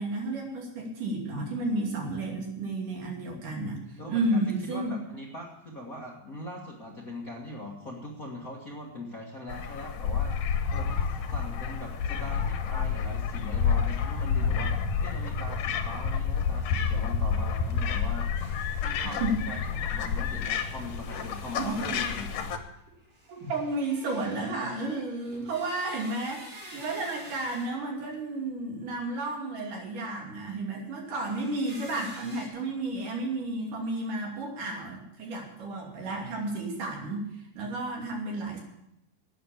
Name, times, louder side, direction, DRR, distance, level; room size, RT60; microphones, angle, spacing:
voice 1, 0.0-4.9 19.0-19.4 21.6-22.0 23.3-38.6, right 2 dB, 65° right, 0 dB, 4.3 m, -32 dB
voice 2, 3.9-14.7 15.0-22.5, left 1 dB, 35° left, -1 dB, 1.4 m, -41 dB
sound 1, 9.5-22.6, left 6 dB, 75° left, 2.7 m, -29 dB
sound 2, 18.3-27.7 31.1-32.5, right 1 dB, 30° right, 6.4 m, -50 dB
12.0 x 9.3 x 8.4 m, 0.81 s
omnidirectional pair, 3.9 m